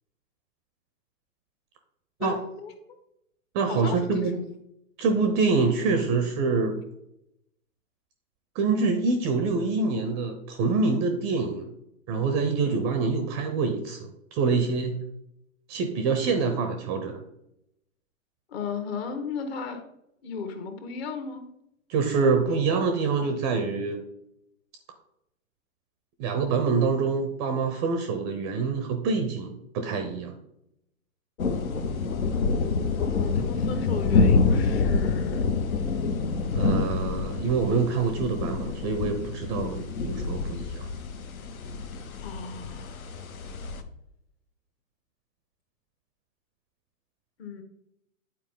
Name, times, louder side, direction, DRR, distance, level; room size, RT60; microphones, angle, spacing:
voice 1, 2.2-2.7 3.7-4.5 18.5-19.8 20.2-21.4 33.1-35.4 42.2-43.0 47.4-47.6, left 5 dB, 45° left, 7 dB, 1.4 m, -35 dB
voice 2, 3.5-4.4 5.0-6.8 8.5-11.7 12.1-14.9 15.7-17.2 21.9-24.0 26.2-30.4 36.5-40.9, right 4 dB, 20° right, 6 dB, 0.4 m, -26 dB
sound 1, 31.4-43.8, left 4 dB, 80° left, 1.0 m, -27 dB
9.1 x 4.4 x 3.6 m, 0.81 s
hypercardioid pair, 125°, 41 cm